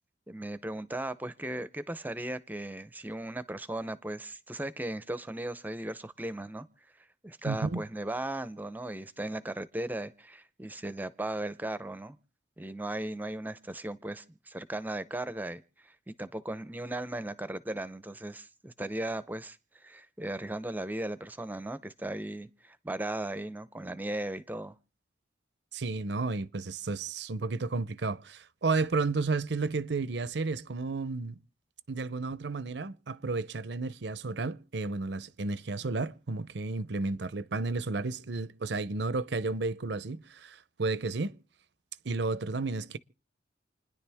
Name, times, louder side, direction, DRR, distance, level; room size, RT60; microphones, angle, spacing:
voice 1, 0.3-6.7 7.2-12.2 12.6-24.8, right 1 dB, 10° right, 0.6 m, -37 dB
voice 2, 7.4-7.8 25.7-31.4 31.9-41.3 42.0-43.0, right 3 dB, 70° right, 0.7 m, -32 dB
29.0 x 10.5 x 3.5 m
head